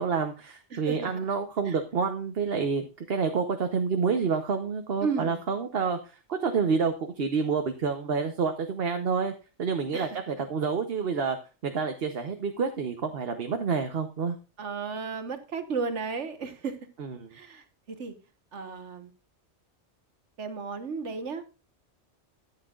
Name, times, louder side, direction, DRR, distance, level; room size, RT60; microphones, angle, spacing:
voice 1, 0.0-9.3 9.6-11.4 11.6-14.4 17.0-17.3, right 5 dB, 60° right, 6 dB, 1.1 m, -28 dB
voice 2, 0.7-1.3 1.7-1.8 5.0-5.4 9.9-10.1 14.6-16.8 17.3-18.1 18.5-19.1 20.4-21.4, right 5 dB, 85° right, 8 dB, 1.6 m, -34 dB
14.0 x 8.8 x 2.4 m, 0.33 s
omnidirectional pair, 1.2 m